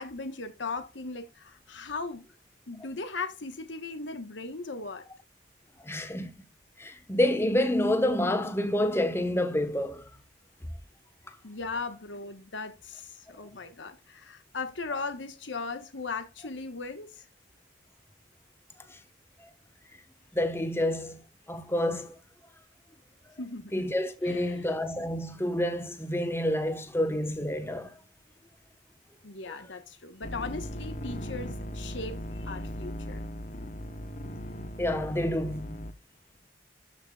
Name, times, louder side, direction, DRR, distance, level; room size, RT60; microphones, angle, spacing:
voice 1, 0.0-2.2 2.7-5.1 11.4-17.3 23.4-23.9 24.2-24.7 29.2-33.2, left 3 dB, 75° left, 1.3 m, -38 dB
voice 2, 5.8-6.3 6.8-10.1 11.3-11.4 18.9-19.0 19.4-19.5 20.3-21.2 21.5-22.1 23.7-27.9 29.5-29.6 34.8-35.8, left 1 dB, 15° left, 1.2 m, -28 dB
sound 1, 30.2-35.9, equal, 40° left, 0.9 m, -38 dB
13.5 x 5.7 x 2.4 m
head